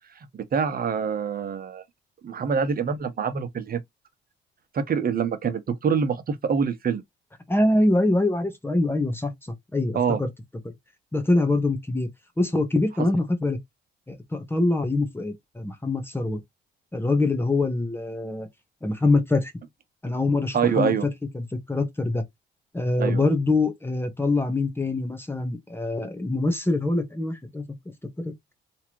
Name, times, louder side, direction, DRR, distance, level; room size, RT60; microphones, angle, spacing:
voice 1, 0.3-1.8 2.2-3.8 4.7-7.0 9.9-10.2 20.5-21.1 23.0-23.2, right 6 dB, 50° right, 1.2 m, -25 dB
voice 2, 7.5-10.3 11.1-12.1 12.4-13.6 14.1-16.4 16.9-18.5 18.8-19.5 20.0-22.2 22.7-27.6 28.2-28.5, left 2 dB, 10° left, 1.4 m, -24 dB
3.6 x 3.2 x 3.1 m
cardioid pair, 90°, 20 cm